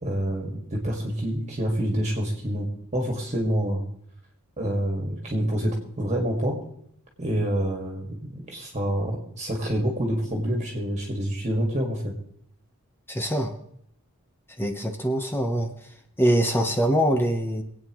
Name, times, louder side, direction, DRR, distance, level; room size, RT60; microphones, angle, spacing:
voice 1, 0.0-2.7 2.9-3.8 4.6-6.6 7.2-12.1, equal, 30° right, -1 dB, 2.0 m, -27 dB
voice 2, 13.1-13.5 14.6-15.7 16.2-17.6, equal, 10° left, 4 dB, 1.0 m, -23 dB
26.0 x 8.8 x 3.1 m, 0.72 s
head